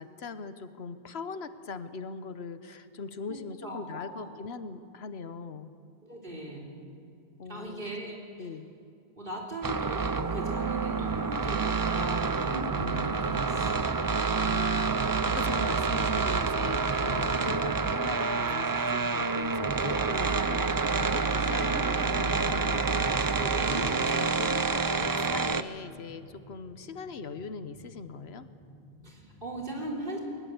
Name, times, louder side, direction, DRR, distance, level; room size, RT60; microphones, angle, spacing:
voice 1, 0.0-5.7 7.4-8.7 15.2-20.7 21.0-28.5, left 5 dB, 85° left, 12 dB, 1.2 m, -41 dB
voice 2, 3.3-4.2 6.0-6.7 7.5-8.1 9.2-14.8 23.3-23.9 29.0-30.2, right 1 dB, 60° right, -1 dB, 3.9 m, -38 dB
sound 1, 9.6-25.6, right 4 dB, 25° right, 0.5 m, -28 dB
sound 2, 15.3-29.7, left 2 dB, 75° right, 4.4 m, -53 dB
21.5 x 20.0 x 8.0 m, 2.5 s
omnidirectional pair, 1.0 m